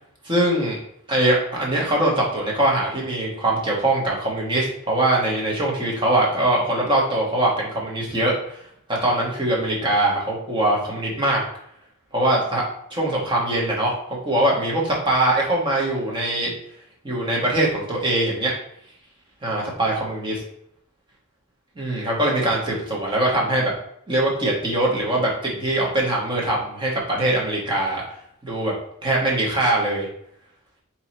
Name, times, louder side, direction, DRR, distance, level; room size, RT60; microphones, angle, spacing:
voice 1, 0.2-0.8 1.1-8.3 8.9-11.4 12.1-12.6 12.9-13.9 14.2-16.5 17.0-18.5 19.4-20.4 21.8-23.7 24.1-28.0 28.4-28.7 29.0-30.1, right 1 dB, 25° right, -3 dB, 1.2 m, -22 dB
3.7 x 2.9 x 4.2 m, 0.71 s
head